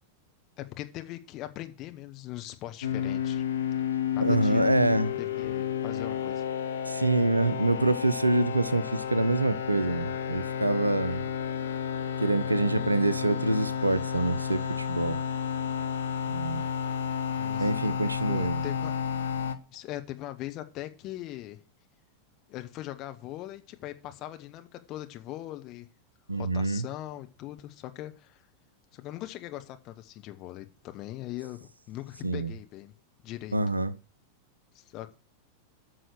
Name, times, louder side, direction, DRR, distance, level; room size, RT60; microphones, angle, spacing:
voice 1, 0.6-3.4 4.1-4.7 5.2-6.4 17.4-17.7 18.3-18.9 19.7-21.6 22.5-25.9 26.3-28.4 28.9-32.9 33.2-33.7 34.7-35.2, left 14 dB, 40° left, 1.1 m, -40 dB
sound 1, 2.8-19.5, left 8 dB, 65° left, 0.9 m, -31 dB
voice 2, 4.2-5.1 6.8-11.2 12.2-15.2 16.3-16.6 17.6-18.6 26.3-26.8 32.2-32.5 33.5-33.9, right 2 dB, 85° right, 0.6 m, -26 dB
9.3 x 6.3 x 6.5 m
figure-of-eight pair, 90°, 0 cm